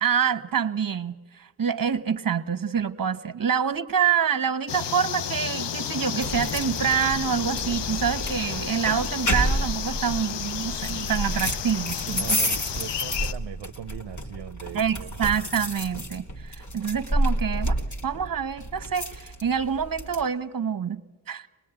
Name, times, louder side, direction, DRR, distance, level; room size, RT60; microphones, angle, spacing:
voice 1, 0.0-12.6 14.7-21.0 21.3-21.5, right 7 dB, 50° right, 13 dB, 1.2 m, -26 dB
sound 1, 4.7-13.3, left 9 dB, 75° left, 0.8 m, -32 dB
sound 2, 6.2-20.2, equal, 40° left, 2.5 m, -30 dB
voice 2, 12.0-15.2, right 10 dB, 70° right, 7 dB, 0.7 m, -40 dB
25.0 x 20.0 x 9.0 m, 1.3 s
cardioid pair, 60°, 42 cm